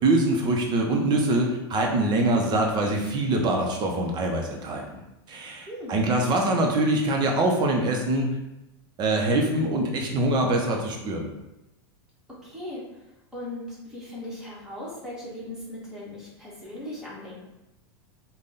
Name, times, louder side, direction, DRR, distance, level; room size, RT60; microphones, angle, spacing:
voice 1, 0.0-5.0 5.3-8.4 9.0-11.3, right 2 dB, 30° right, 1 dB, 0.7 m, -24 dB
voice 2, 5.6-6.0 12.4-12.8 13.3-17.3, left 1 dB, 5° right, -8 dB, 1.5 m, -38 dB
3.5 x 2.3 x 3.9 m, 0.95 s
supercardioid pair, 130°, 14 cm